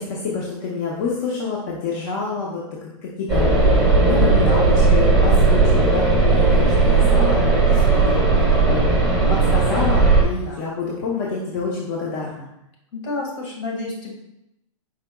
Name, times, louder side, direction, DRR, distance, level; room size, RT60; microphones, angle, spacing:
voice 1, 0.0-8.2 8.7-8.9 9.3-12.5, left 4 dB, 40° left, -4 dB, 0.8 m, -27 dB
sound 1, 3.3-10.2, right 3 dB, ahead, 0.9 m, -16 dB
voice 2, 10.3-10.6 12.9-14.1, left 2 dB, 65° left, -1 dB, 1.8 m, -30 dB
4.9 x 4.7 x 2.2 m, 0.86 s
hypercardioid pair, 155°, 17 cm